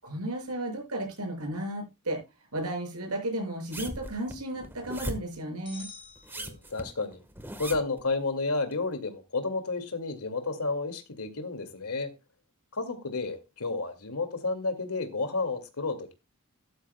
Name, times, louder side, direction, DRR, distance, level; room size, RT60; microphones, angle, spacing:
voice 1, 0.0-2.2 2.5-5.9, right 1 dB, 85° right, 6.6 m, -34 dB
sound 1, 3.7-5.4 6.2-8.0 8.7-8.8, right 1 dB, 10° right, 1.3 m, -38 dB
sound 2, 5.6-7.2, left 4 dB, 25° left, 5.7 m, -49 dB
voice 2, 6.3-7.2 7.6-12.1 12.7-16.1, left 3 dB, 85° left, 2.2 m, -31 dB
13.5 x 12.0 x 2.3 m
head